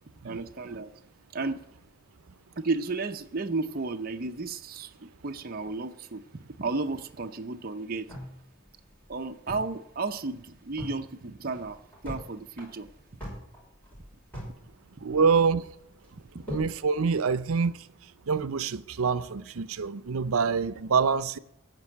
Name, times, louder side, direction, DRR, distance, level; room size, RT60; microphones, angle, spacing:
voice 1, 0.2-0.9 1.3-1.6 2.6-8.1 9.1-12.9 15.0-15.1 16.1-16.5, right 3 dB, 45° right, 0.6 m, -33 dB
sound 1, 8.1-9.8 10.1-10.2 10.5-11.0 11.4-12.2 12.5-14.6 14.8-15.5 16.0-16.8, equal, 10° left, 6.0 m, -41 dB
voice 2, 15.0-15.7 16.4-17.9 18.3-21.4, right 5 dB, 85° right, 0.6 m, -26 dB
15.0 x 5.4 x 9.7 m
head